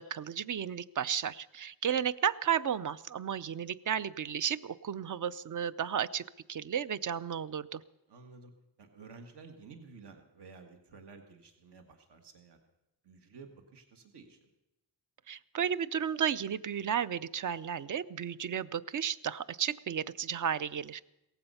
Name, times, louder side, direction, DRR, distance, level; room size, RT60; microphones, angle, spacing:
voice 1, 0.0-6.2 6.5-7.8 15.3-21.0, right 8 dB, 50° right, 16 dB, 0.5 m, -33 dB
voice 2, 8.1-8.5 8.8-12.6 13.0-14.5, right 4 dB, 70° right, 6 dB, 1.8 m, -53 dB
17.5 x 15.0 x 5.6 m, 0.91 s
wide cardioid pair, 150°, 42 cm